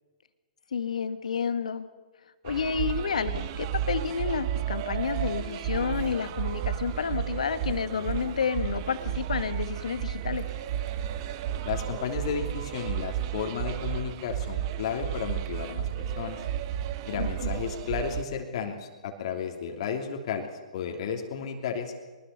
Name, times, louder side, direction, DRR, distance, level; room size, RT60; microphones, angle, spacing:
voice 1, 0.7-1.9 2.4-10.5 17.2-17.5, left 6 dB, 70° left, 11 dB, 2.0 m, -30 dB
sound 1, 2.5-18.2, right 10 dB, 40° right, 1.5 m, -32 dB
voice 2, 11.6-16.4 17.1-20.5 20.7-21.9, left 7 dB, 50° left, 4 dB, 3.1 m, -33 dB
23.5 x 21.0 x 6.9 m, 1.4 s
figure-of-eight pair, 125°, 4 cm